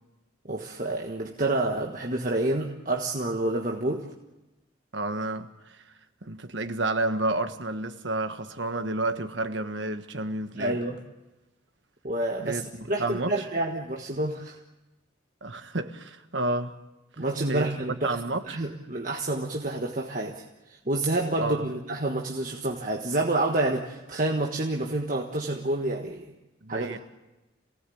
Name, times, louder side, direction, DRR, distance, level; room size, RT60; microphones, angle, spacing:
voice 1, 0.5-4.1 10.6-11.0 12.0-12.6 12.9-14.6 17.2-18.1 18.5-20.4 20.7-26.3 26.7-27.0, right 2 dB, 45° right, 1.5 m, -28 dB
voice 2, 4.9-5.8 6.2-10.8 12.4-13.4 15.4-16.7 17.5-17.7 18.0-18.6 21.4-21.7 26.6-27.0, right 2 dB, 70° right, 1.5 m, -30 dB
27.5 x 18.0 x 8.6 m
head